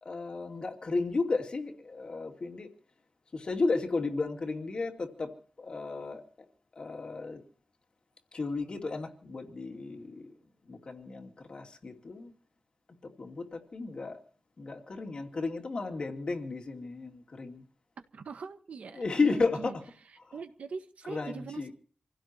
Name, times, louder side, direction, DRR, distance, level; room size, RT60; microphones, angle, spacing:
voice 1, 0.0-2.7 3.3-6.2 6.7-7.4 8.3-10.3 10.7-12.3 13.0-14.2 14.6-17.6 18.9-19.8 20.2-20.4 21.0-21.7, left 3 dB, 45° left, 2.6 m, -33 dB
voice 2, 18.1-19.7 20.3-21.7, right 5 dB, 85° right, 1.7 m, -42 dB
27.5 x 16.5 x 3.0 m
wide cardioid pair, 160°, 2 cm